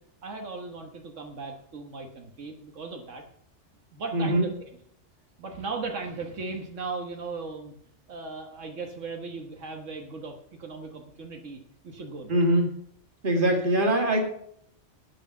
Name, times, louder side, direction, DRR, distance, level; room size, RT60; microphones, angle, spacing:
voice 1, 0.2-3.2 3.9-4.7 5.4-7.7 8.1-10.3 10.6-11.6 11.8-12.4, right 4 dB, 85° right, 3 dB, 1.6 m, -37 dB
voice 2, 4.1-4.5 12.3-12.8 13.2-14.2, right 1 dB, 45° right, 2 dB, 2.2 m, -23 dB
10.5 x 8.8 x 5.8 m, 0.68 s
omnidirectional pair, 1.2 m